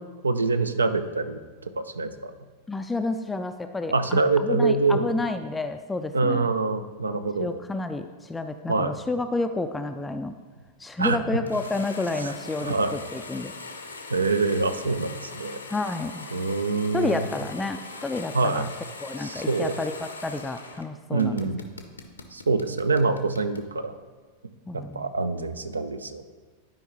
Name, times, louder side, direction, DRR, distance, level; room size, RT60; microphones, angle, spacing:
voice 1, 0.2-1.4 1.8-2.3 3.9-5.1 6.1-7.5 8.7-8.9 11.0-11.2 12.2-12.3 12.6-12.9 14.1-15.6 16.3-17.3 18.3-18.6 19.2-19.7 21.1-21.6 22.3-24.0 24.7-26.2, right 3 dB, 75° right, 11 dB, 0.4 m, -25 dB
voice 2, 2.7-6.5 7.4-10.4 10.8-13.5 15.7-16.3 16.9-18.7 19.0-21.4 24.7-25.1, left 2 dB, 10° left, 7 dB, 0.3 m, -30 dB
sound 1, 11.5-20.9 21.2-23.7, left 3 dB, 80° left, 0.7 m, -41 dB
11.5 x 4.9 x 3.0 m, 1.5 s
figure-of-eight pair, 90°, 0 cm